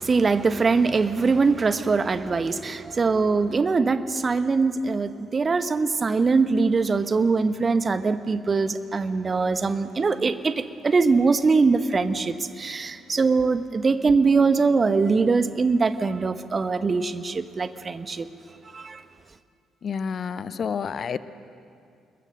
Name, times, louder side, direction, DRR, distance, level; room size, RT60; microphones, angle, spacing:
voice 1, 0.0-18.3 18.7-19.0, right 4 dB, 35° right, 12 dB, 1.0 m, -22 dB
voice 2, 19.8-21.2, left 6 dB, 45° left, 16 dB, 0.7 m, -29 dB
26.0 x 22.0 x 6.5 m, 2.4 s
figure-of-eight pair, 45°, 0 cm